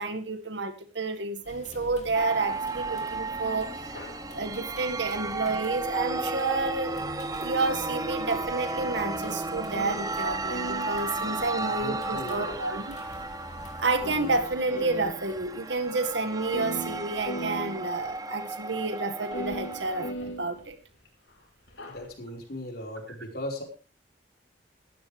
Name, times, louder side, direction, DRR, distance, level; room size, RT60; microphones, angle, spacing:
voice 1, 0.0-4.0 4.3-7.0 7.4-13.0 13.8-20.8, right 3 dB, 70° right, 8 dB, 1.9 m, -30 dB
sound 1, 1.4-14.6, left 1 dB, 35° left, 2.8 m, -47 dB
sound 2, 2.1-20.1, right 3 dB, 20° right, 0.8 m, -34 dB
sound 3, 3.9-4.2 6.1-10.2 10.5-12.0 12.9-13.0 13.6-13.7 13.9-15.5 15.8-15.9 16.1-16.2 16.4-18.1 19.3-21.1 21.7-22.1, right 1 dB, 75° left, 4.7 m, -39 dB
voice 2, 11.7-12.6 21.9-23.6, left 1 dB, 55° left, 1 dB, 4.9 m, -38 dB
17.0 x 13.5 x 3.4 m, 0.33 s
head